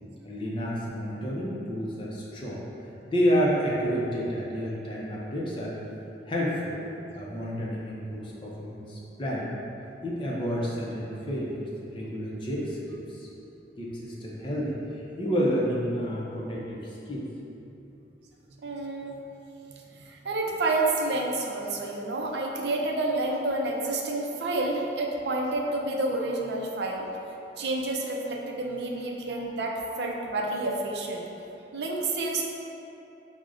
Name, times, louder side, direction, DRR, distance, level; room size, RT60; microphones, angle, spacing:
voice 1, 0.2-2.7 3.0-5.8 6.3-6.8 7.1-9.5 10.0-13.3 13.8-17.3 29.3-29.4, equal, 30° left, -5 dB, 0.5 m, -30 dB
voice 2, 18.6-19.1 20.1-27.1 27.6-31.2 31.7-32.5, right 2 dB, 70° right, -1 dB, 0.4 m, -29 dB
6.2 x 2.1 x 2.4 m, 2.9 s
head